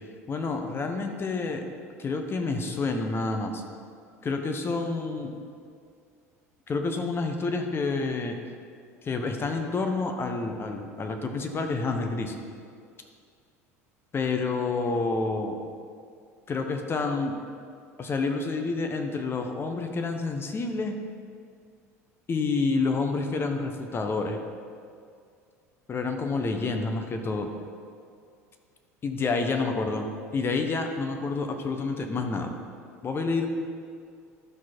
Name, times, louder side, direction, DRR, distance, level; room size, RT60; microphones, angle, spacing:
voice 1, 0.3-1.6 2.0-3.6 4.2-5.3 6.7-8.4 9.0-12.3 14.1-15.5 16.5-17.3 18.0-21.0 22.3-24.4 25.9-27.5 29.0-30.1 30.3-32.5 33.0-33.5, left 3 dB, 30° left, 5 dB, 1.1 m, -28 dB
12.0 x 6.2 x 4.4 m, 2.2 s
figure-of-eight pair, 70°, 8 cm